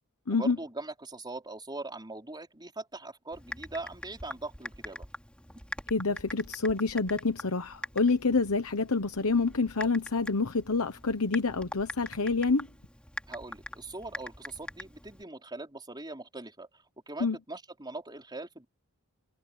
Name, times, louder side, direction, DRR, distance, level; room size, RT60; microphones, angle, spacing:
voice 1, 0.3-5.1 13.3-18.7, right 2 dB, 20° right, 4.7 m, -41 dB
Typing, 3.3-15.2, left 1 dB, 5° left, 3.3 m, -44 dB
voice 2, 5.9-12.7 17.2-17.4, left 4 dB, 70° left, 1.1 m, -27 dB
head